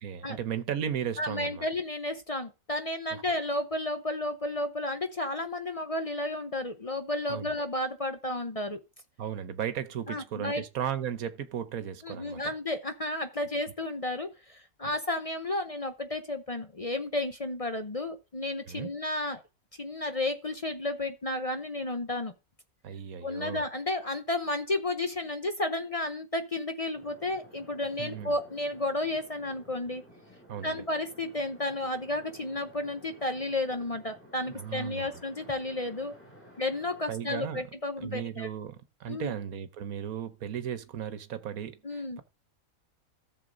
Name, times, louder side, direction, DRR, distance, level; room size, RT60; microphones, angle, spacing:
voice 1, 0.0-1.7 3.1-3.2 7.3-7.6 9.2-12.5 18.7-18.9 22.8-23.6 28.0-28.3 30.5-30.8 34.5-35.2 37.1-37.6 38.0-42.2, right 9 dB, 75° right, 1.4 m, -36 dB
voice 2, 1.2-8.8 10.1-10.6 12.0-19.4 19.8-22.3 23.2-30.0 30.6-36.1 36.6-38.5 39.1-39.3 41.8-42.2, left 2 dB, 35° left, 0.6 m, -32 dB
sound 1, 26.9-37.5, equal, 10° left, 4.8 m, -54 dB
14.0 x 6.8 x 3.9 m
omnidirectional pair, 1.5 m